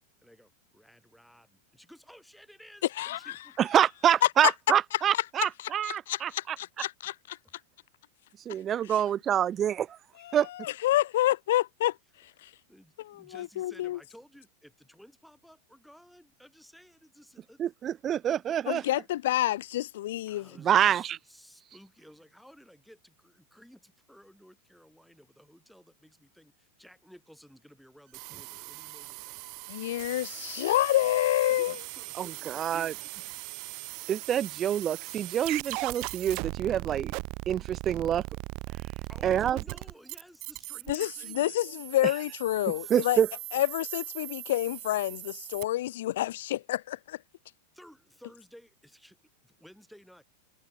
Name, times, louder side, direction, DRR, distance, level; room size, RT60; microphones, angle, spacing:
voice 1, 0.2-3.6 7.4-7.5 12.4-17.6 20.3-29.4 29.7-30.1 31.5-33.1 39.0-41.6 42.8-43.1 43.6-43.7 47.7-49.2 49.4-50.2, equal, ahead, 4.0 m, -55 dB
voice 2, 3.6-6.6 8.5-10.0 10.3-10.5 17.6-18.8 20.6-21.2 32.2-32.9 34.1-37.1 37.5-38.2 39.2-39.6 42.9-43.3, right 10 dB, 25° right, 0.8 m, -26 dB
voice 3, 5.8-6.2 6.8-7.1 10.2-11.9 12.4-12.5 13.1-14.0 18.7-20.5 29.7-31.7 40.9-43.2 43.5-47.2, left 14 dB, 55° left, 0.9 m, -28 dB
sound 1, 28.1-45.6, right 30 dB, 45° right, 0.4 m, -39 dB
figure-of-eight pair, 90°, 0 cm